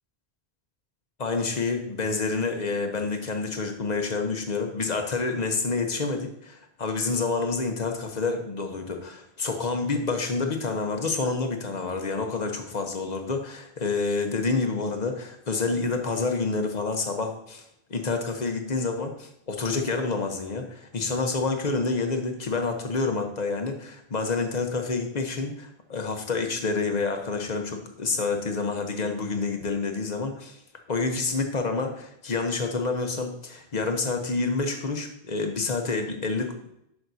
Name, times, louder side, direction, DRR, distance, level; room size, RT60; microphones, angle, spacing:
voice 1, 1.2-17.6 17.9-30.6 30.9-36.6, left 4 dB, 45° left, 5 dB, 0.9 m, -28 dB
10.5 x 5.3 x 2.7 m, 0.78 s
omnidirectional pair, 1.0 m